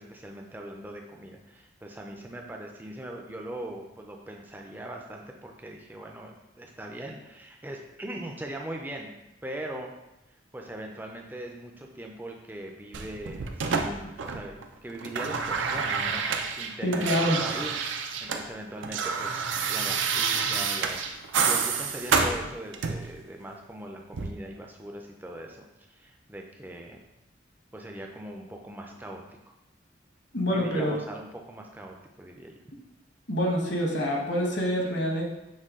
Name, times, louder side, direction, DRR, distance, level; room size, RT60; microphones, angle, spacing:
voice 1, 0.0-9.1 9.4-9.9 10.5-14.5 14.8-16.2 16.5-19.4 19.7-21.2 21.4-27.0 27.7-29.2 30.5-32.6, right 1 dB, 10° right, 1 dB, 0.4 m, -40 dB
sound 1, 12.9-14.6 14.9-18.4 18.7-23.1 24.1-24.3, right 5 dB, 85° right, 0.4 m, -28 dB
voice 2, 16.8-17.4 30.3-31.0 33.3-35.2, equal, 65° left, -2 dB, 1.1 m, -26 dB
6.4 x 2.2 x 3.6 m, 0.92 s
head